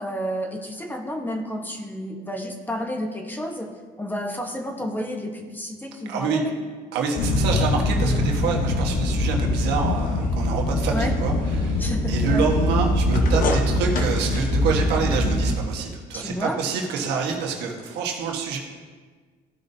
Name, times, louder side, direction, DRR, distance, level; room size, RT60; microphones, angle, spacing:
voice 1, 0.0-3.7 4.0-6.4 7.5-7.6 10.9-11.1 11.8-12.4 16.1-16.6, equal, 10° left, 3 dB, 1.1 m, -30 dB
voice 2, 6.1-6.4 6.9-18.6, right 5 dB, 90° right, 1 dB, 1.3 m, -27 dB
sound 1, 7.2-15.5, left 1 dB, 55° left, 1.0 m, -23 dB
15.0 x 5.4 x 2.7 m, 1.5 s
cardioid pair, 110°, 17 cm